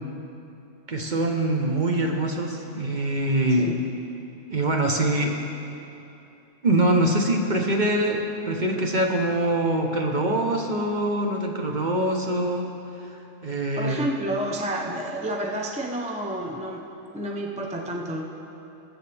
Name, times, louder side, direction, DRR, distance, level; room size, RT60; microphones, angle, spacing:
voice 1, 0.9-3.7 4.5-5.4 6.6-12.7 13.0-14.1, right 1 dB, 40° right, 1 dB, 1.0 m, -24 dB
voice 2, 13.8-16.9 17.1-18.2, right 1 dB, 10° right, 1 dB, 0.5 m, -30 dB
21.0 x 8.1 x 3.4 m, 2.9 s
omnidirectional pair, 1.3 m